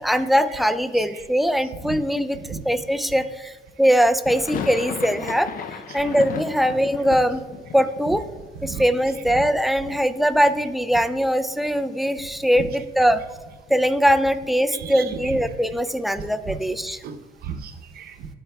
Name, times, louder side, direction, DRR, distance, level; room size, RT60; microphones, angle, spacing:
voice 1, 0.0-2.4 2.7-5.5 5.9-7.4 7.7-8.2 8.6-13.2 13.7-17.0, equal, ahead, 12 dB, 0.3 m, -21 dB
voice 2, 0.9-1.3 1.8-2.0 2.3-2.6 3.1-3.2 5.9-6.2 8.5-8.9 9.1-9.5 9.8-10.0 12.6-12.7 14.7-15.6 16.2-16.6 16.9-18.3, right 6 dB, 65° right, 6 dB, 0.7 m, -35 dB
sound 1, 4.2-10.2 10.5-11.3 11.6-11.7 11.9-14.1, left 6 dB, 55° left, 0.6 m, -36 dB
12.5 x 4.7 x 2.3 m, 1.3 s
cardioid pair, 110°, 17 cm